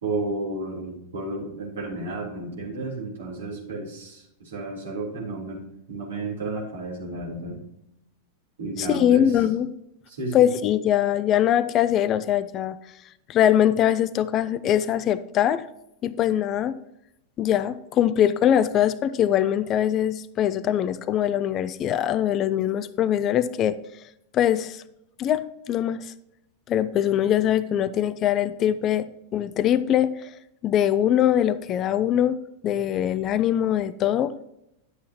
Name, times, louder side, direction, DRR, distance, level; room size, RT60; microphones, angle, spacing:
voice 1, 0.0-5.6 5.9-7.6 8.6-9.4 10.1-10.5, right 2 dB, 65° right, -2 dB, 3.5 m, -32 dB
voice 2, 8.8-9.7 10.3-12.8 13.3-15.6 16.0-16.8 17.4-23.8 24.3-24.8 25.2-26.1 26.7-29.1 29.3-30.3 30.6-34.3, left 10 dB, 30° left, 15 dB, 0.4 m, -22 dB
11.0 x 8.3 x 2.9 m, 0.81 s
figure-of-eight pair, 90°, 0 cm